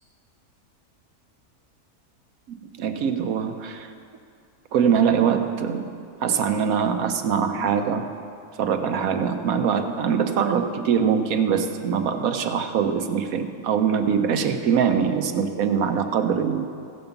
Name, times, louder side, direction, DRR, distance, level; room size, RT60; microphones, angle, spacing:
voice 1, 2.5-3.9 4.7-5.9 6.2-8.1 8.6-16.7, right 7 dB, 70° right, 7 dB, 1.2 m, -23 dB
15.5 x 5.3 x 6.9 m, 2.3 s
omnidirectional pair, 1.6 m